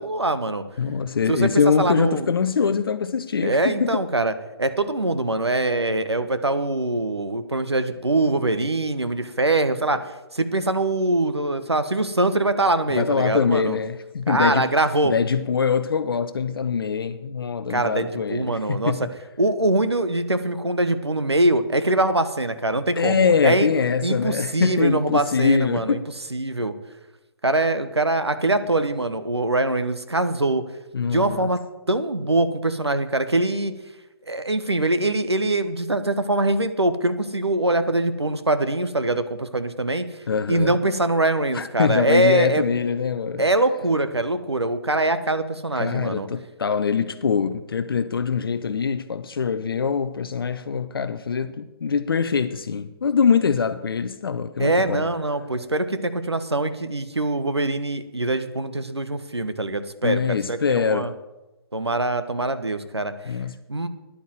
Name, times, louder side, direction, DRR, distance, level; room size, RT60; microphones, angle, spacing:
voice 1, 0.0-0.6 1.3-1.5 1.8-2.3 3.4-4.3 4.6-10.0 10.3-13.8 14.3-15.1 17.7-19.1 19.4-23.7 24.0-26.0 26.3-26.7 27.4-30.6 31.0-31.6 31.9-33.7 34.3-40.0 40.5-42.6 43.4-46.3 54.6-61.1 61.7-63.1 63.7-63.9, right 2 dB, 85° right, 1.1 m, -23 dB
voice 2, 0.8-3.9 12.9-14.7 15.0-19.1 23.0-26.0 30.9-31.5 40.3-40.7 41.5-43.4 45.8-55.1 60.0-61.1 63.3-63.6, left 6 dB, 60° left, 0.6 m, -23 dB
10.0 x 9.2 x 7.7 m
figure-of-eight pair, 130°, 13 cm